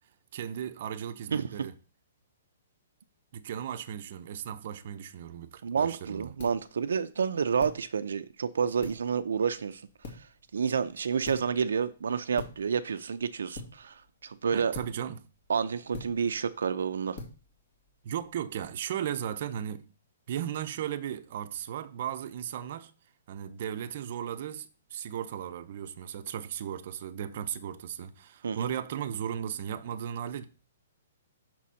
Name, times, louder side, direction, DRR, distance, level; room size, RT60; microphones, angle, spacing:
voice 1, 0.3-1.7 3.3-6.3 14.5-15.2 18.0-19.9 20.3-22.9 23.3-30.5, right 9 dB, 45° right, 0.7 m, -36 dB
voice 2, 1.3-1.7 5.6-9.8 10.1-10.3 10.5-14.7 15.5-17.2 28.4-28.7, right 6 dB, 85° right, 0.5 m, -29 dB
sound 1, 5.2-18.7, left 3 dB, 40° left, 2.2 m, -49 dB
6.1 x 4.3 x 6.2 m
hypercardioid pair, 160°, 0 cm